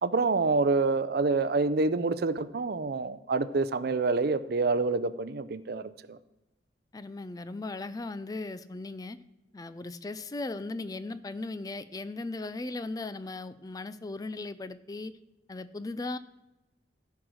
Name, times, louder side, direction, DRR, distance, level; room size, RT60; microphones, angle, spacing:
voice 1, 0.0-6.2, right 3 dB, 60° right, 14 dB, 0.5 m, -27 dB
voice 2, 6.9-9.2 9.5-15.1 15.5-16.2, left 2 dB, 20° left, 13 dB, 0.4 m, -37 dB
14.0 x 4.7 x 6.2 m, 1.0 s
head